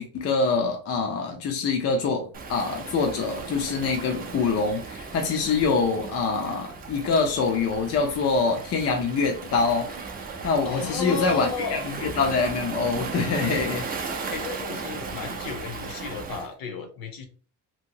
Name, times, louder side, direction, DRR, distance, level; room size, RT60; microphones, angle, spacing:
voice 1, 0.0-9.9 10.4-13.9, left 4 dB, 40° left, 2 dB, 0.4 m, -25 dB
Waves surf, 2.3-16.5, right 4 dB, 25° right, 0.4 m, -36 dB
voice 2, 10.6-11.8 14.3-17.2, left 4 dB, 60° left, 6 dB, 0.8 m, -33 dB
2.8 x 2.7 x 2.7 m, 0.38 s
cardioid pair, 155°, 40 cm